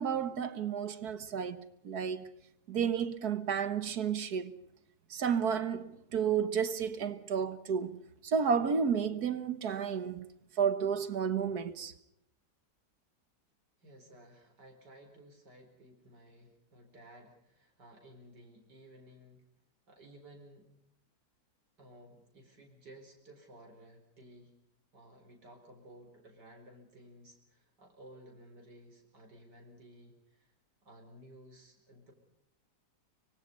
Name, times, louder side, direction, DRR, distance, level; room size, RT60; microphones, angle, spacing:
voice 1, 0.0-2.3 2.7-4.5 5.1-10.3 10.6-11.9, right 7 dB, 65° right, 1.8 m, -32 dB
voice 2, 13.8-19.4 19.9-20.7 21.8-24.6 24.9-30.5 30.8-32.1, right 1 dB, 85° right, 5.2 m, -56 dB
25.0 x 25.0 x 5.4 m
omnidirectional pair, 1.8 m